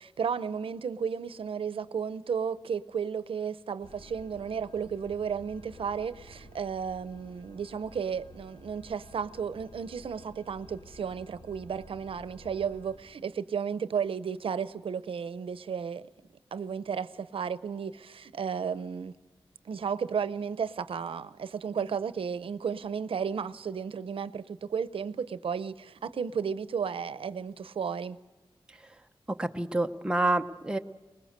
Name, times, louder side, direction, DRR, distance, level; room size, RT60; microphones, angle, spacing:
voice 1, 0.0-16.1 16.5-19.1 19.6-28.2, right 6 dB, 90° right, 0.7 m, -33 dB
sound 1, 3.8-13.0, left 1 dB, 55° left, 5.8 m, -52 dB
voice 2, 29.3-30.8, right 2 dB, 10° right, 0.9 m, -28 dB
24.0 x 20.5 x 6.6 m
wide cardioid pair, 150°, 9 cm